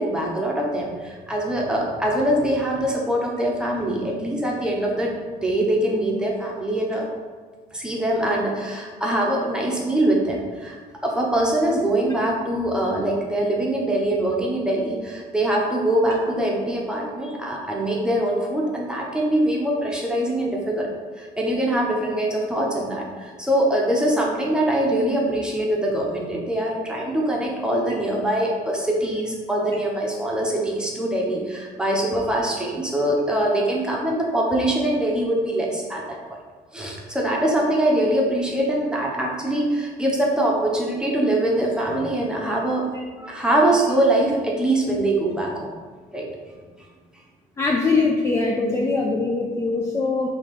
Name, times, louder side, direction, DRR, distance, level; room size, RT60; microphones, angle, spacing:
voice 1, 0.0-7.0 7.7-10.8 11.0-20.9 21.2-36.4 36.7-42.9 43.2-45.7 46.1-46.3, right 1 dB, 5° right, -3 dB, 0.9 m, -23 dB
voice 2, 47.6-50.3, left 3 dB, 15° left, -1 dB, 0.4 m, -22 dB
4.8 x 2.9 x 3.7 m, 1.5 s
cardioid pair, 110°, 17 cm